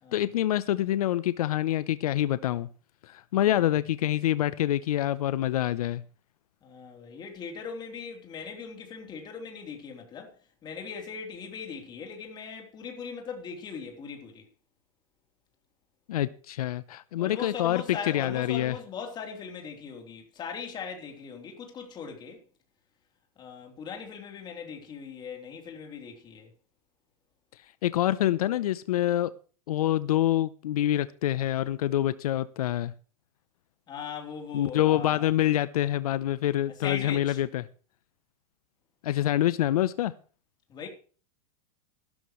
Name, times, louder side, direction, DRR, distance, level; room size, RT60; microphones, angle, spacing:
voice 1, 0.1-2.7 3.1-6.0 16.1-18.8 27.8-29.3 29.7-32.9 34.5-37.6 39.0-40.1, left 13 dB, 85° left, 0.8 m, -26 dB
voice 2, 6.6-10.3 10.6-14.4 17.2-22.4 23.4-26.5 33.9-35.2 36.7-37.4 40.7-40.9, left 6 dB, 25° left, 3.5 m, -39 dB
15.0 x 12.5 x 3.2 m
supercardioid pair, 150°, 18 cm